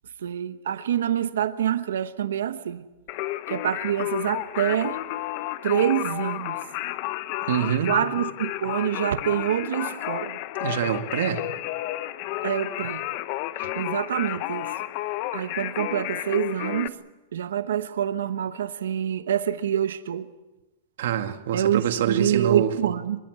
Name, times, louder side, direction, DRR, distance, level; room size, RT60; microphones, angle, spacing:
voice 1, 0.2-2.8 3.5-5.0 5.6-6.5 7.9-10.4 12.4-13.1 13.7-14.7 15.3-17.0 17.3-20.3 21.5-23.2, right 10 dB, 90° right, 1.1 m, -26 dB
Singing, 3.1-16.9, left 16 dB, 45° left, 0.9 m, -31 dB
voice 2, 7.4-7.9 10.6-11.4 13.6-13.7 21.0-22.7, right 9 dB, 70° right, 2.2 m, -25 dB
24.0 x 21.5 x 8.2 m
supercardioid pair, 145°, 0 cm